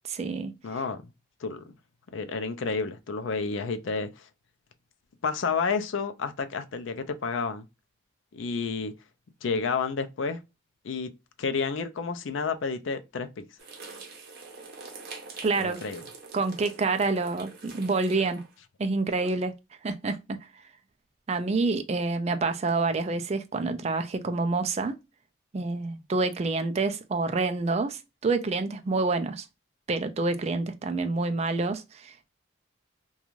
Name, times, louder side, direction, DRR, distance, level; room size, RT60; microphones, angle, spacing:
voice 1, 0.0-0.5 15.4-15.8 16.3-18.4 18.8-19.5 19.8-20.4 21.3-24.9 25.5-29.5 29.9-32.1, right 3 dB, 30° right, 0.3 m, -27 dB
voice 2, 0.6-1.1 1.4-1.6 2.1-4.3 5.2-7.6 8.3-8.9 9.4-10.4 10.8-11.1 11.4-13.4 15.6-16.0, left 5 dB, 65° left, 0.4 m, -30 dB
sound 1, 13.6-18.5, right 4 dB, 50° right, 0.7 m, -45 dB
2.5 x 2.3 x 2.9 m
head